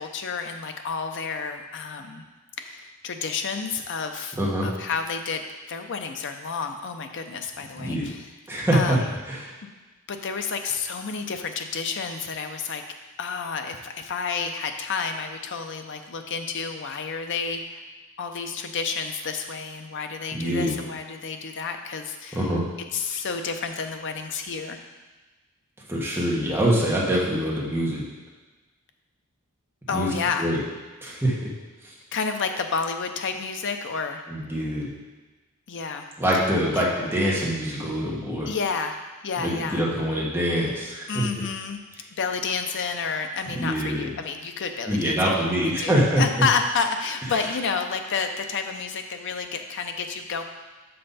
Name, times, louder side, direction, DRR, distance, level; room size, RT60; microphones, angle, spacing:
voice 1, 0.0-2.2 2.6-4.4 4.6-5.4 5.7-8.3 8.7-9.1 9.6-9.7 10.1-12.8 13.2-17.8 18.2-22.5 22.9-24.8 29.9-30.5 32.1-34.2 35.7-36.1 36.7-36.8 38.5-39.0 39.2-39.8 41.1-41.8 42.2-45.1 45.4-50.4, left 5 dB, 55° left, 6 dB, 0.6 m, -30 dB
voice 2, 7.8-8.1 8.5-9.0 9.3-9.5 20.3-20.7 22.3-22.6 25.9-28.0 29.9-30.1 30.4-30.6 31.0-31.5 31.8-31.9 34.3-34.9 36.2-38.5 39.4-41.2 43.5-44.1 44.9-46.2 47.3-47.4, equal, 10° right, -6 dB, 1.3 m, -24 dB
6.6 x 5.6 x 4.1 m, 1.2 s
head